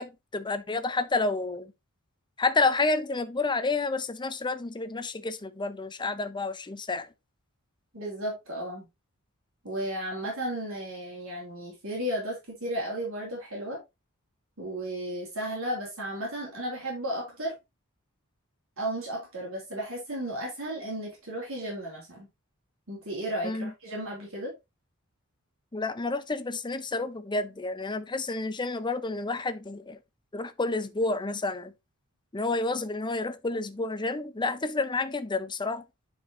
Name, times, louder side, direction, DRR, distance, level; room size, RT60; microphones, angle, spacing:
voice 1, 0.0-1.7 2.4-7.1 23.4-23.7 25.7-30.0 30.3-31.7 32.3-35.8, left 3 dB, 20° left, 0.7 m, -30 dB
voice 2, 7.9-8.9 9.6-13.8 14.6-17.5 18.8-22.3 22.9-24.5, right 1 dB, 65° right, 3.6 m, -34 dB
10.0 x 4.6 x 2.8 m
head